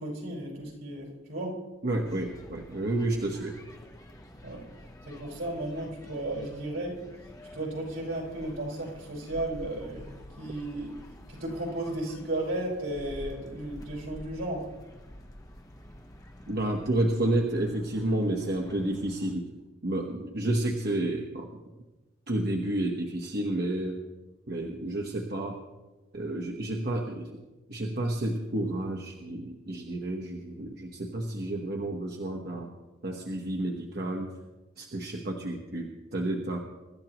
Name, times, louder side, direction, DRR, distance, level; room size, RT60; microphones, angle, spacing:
voice 1, 0.0-1.6 4.4-4.6 5.0-7.0 7.5-10.9 11.3-14.7, right 1 dB, 75° right, -2 dB, 5.0 m, -34 dB
voice 2, 1.8-3.6 16.5-19.5 19.8-21.6 22.3-24.0 24.5-25.6 26.1-27.3 27.7-32.7 33.0-34.3 34.8-36.6, right 1 dB, 50° right, 1 dB, 1.1 m, -30 dB
sound 1, 2.0-19.3, equal, 20° left, 1.0 m, -49 dB
24.0 x 12.5 x 3.0 m, 1.1 s
head